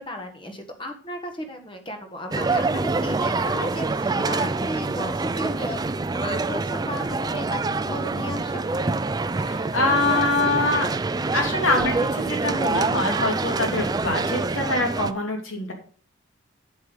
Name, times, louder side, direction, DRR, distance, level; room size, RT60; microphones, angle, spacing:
voice 1, 0.0-8.6, left 1 dB, 25° left, 5 dB, 1.5 m, -35 dB
sound 1, 2.3-15.1, right 3 dB, 20° right, 0.3 m, -26 dB
voice 2, 9.4-10.9 11.3-15.7, left 2 dB, 75° left, 3 dB, 2.8 m, -24 dB
8.3 x 8.1 x 5.1 m, 0.43 s
head